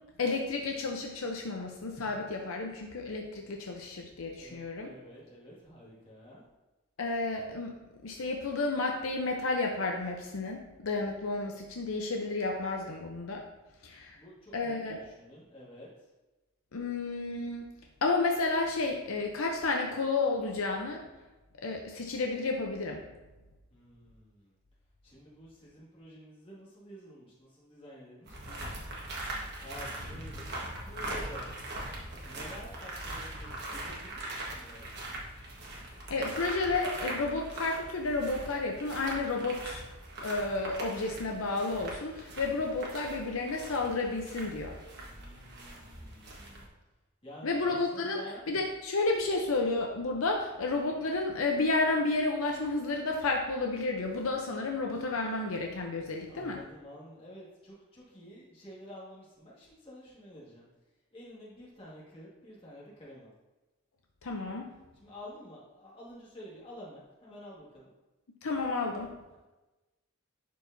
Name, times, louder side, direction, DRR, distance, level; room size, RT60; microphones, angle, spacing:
voice 1, 0.2-4.9 7.0-7.7 8.0-13.4 13.8-14.2 14.5-15.0 16.7-17.7 18.0-21.0 21.6-23.0 36.1-39.8 40.2-44.8 47.4-48.2 48.5-56.6 64.2-64.7 68.4-69.1, left 3 dB, 70° left, 1 dB, 0.7 m, -31 dB
voice 2, 4.4-6.4 14.1-15.9 23.7-24.6 25.0-28.9 29.6-31.5 32.2-34.9 45.0-46.7 47.2-48.5 56.3-60.7 61.1-63.3 64.9-67.9, equal, 25° left, -6 dB, 2.0 m, -50 dB
sound 1, 28.2-46.7, right 1 dB, 50° right, 1.4 m, -41 dB
11.0 x 4.7 x 2.7 m, 1.1 s
head